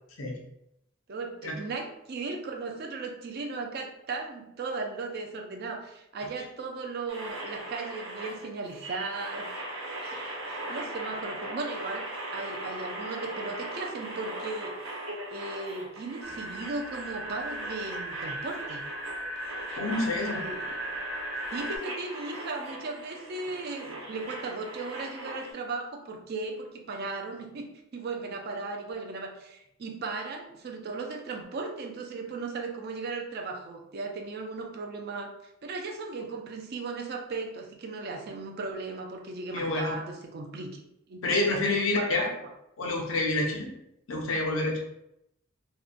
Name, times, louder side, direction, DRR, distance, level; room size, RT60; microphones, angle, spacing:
voice 1, 1.1-9.5 10.0-15.0 15.3-18.8 20.3-20.8 21.5-35.3 35.6-40.8 41.1-42.5, right 3 dB, 50° right, 2 dB, 0.4 m, -37 dB
sound 1, 7.1-25.5, right 1 dB, 90° right, 0.8 m, -39 dB
sound 2, 16.2-21.8, right 1 dB, 5° right, 0.5 m, -37 dB
voice 2, 19.8-20.4 39.5-40.0 41.2-42.3 42.8-43.7 44.1-44.8, left 2 dB, 75° left, 0 dB, 0.6 m, -28 dB
2.6 x 2.1 x 2.5 m, 0.80 s
head